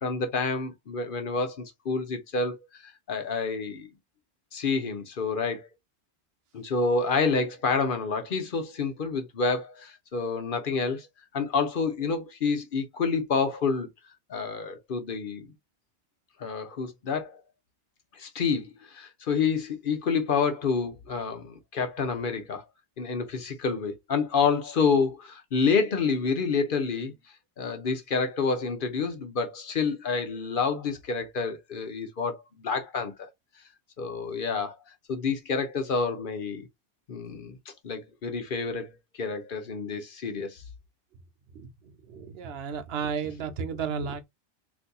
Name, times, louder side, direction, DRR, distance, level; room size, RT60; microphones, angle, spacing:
voice 1, 0.0-3.9 4.5-5.7 6.5-11.1 11.3-13.9 14.3-15.5 16.4-17.4 18.1-22.6 23.0-27.1 27.6-33.3 34.0-34.8 35.1-36.7 37.1-37.6 37.8-38.9 39.2-40.6, left 5 dB, 55° left, 0.9 m, -28 dB
voice 2, 42.1-44.2, right 6 dB, 70° right, 0.8 m, -33 dB
4.0 x 2.6 x 2.3 m
omnidirectional pair, 1.1 m